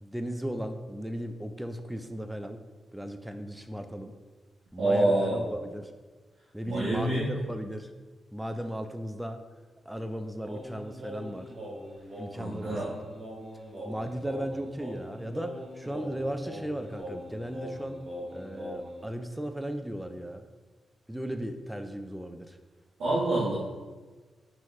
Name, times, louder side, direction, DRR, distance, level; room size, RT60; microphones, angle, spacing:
voice 1, 0.0-2.6 2.9-4.1 4.7-5.9 6.5-7.9 8.3-9.4 9.9-11.5 12.2-13.0 13.8-18.0 18.3-20.5 21.1-22.6, equal, 5° right, 8 dB, 0.3 m, -36 dB
voice 2, 4.8-5.4 6.7-7.3 12.3-12.9 23.0-23.5, right 1 dB, 85° right, -8 dB, 1.1 m, -26 dB
Singing, 10.4-19.0, equal, 40° right, 1.2 m, -41 dB
5.6 x 3.0 x 3.1 m, 1.3 s
cardioid pair, 100°, 0 cm